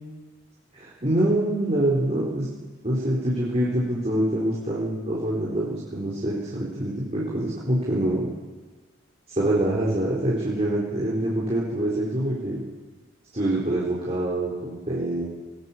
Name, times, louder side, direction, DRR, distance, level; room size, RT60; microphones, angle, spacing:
voice 1, 0.7-2.5 2.8-8.3 9.3-12.6 13.3-15.2, right 1 dB, 35° right, -5 dB, 4.2 m, -25 dB
20.0 x 20.0 x 7.4 m, 1.3 s
head